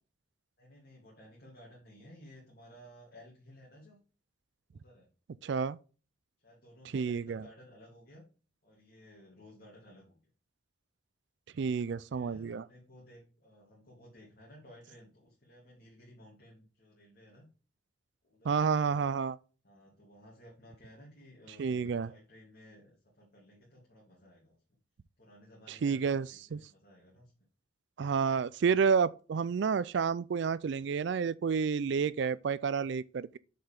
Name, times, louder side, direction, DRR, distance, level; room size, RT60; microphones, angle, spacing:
voice 1, 0.6-4.0 4.7-5.1 6.4-8.2 8.6-10.2 12.1-17.5 18.2-19.1 19.6-24.8 25.2-27.3, equal, 50° left, 2.6 m, -56 dB
voice 2, 5.4-5.8 6.9-7.5 11.6-12.6 18.4-19.4 21.6-22.1 25.7-26.6 28.0-33.4, right 6 dB, 60° right, 0.3 m, -30 dB
7.3 x 5.6 x 3.5 m
head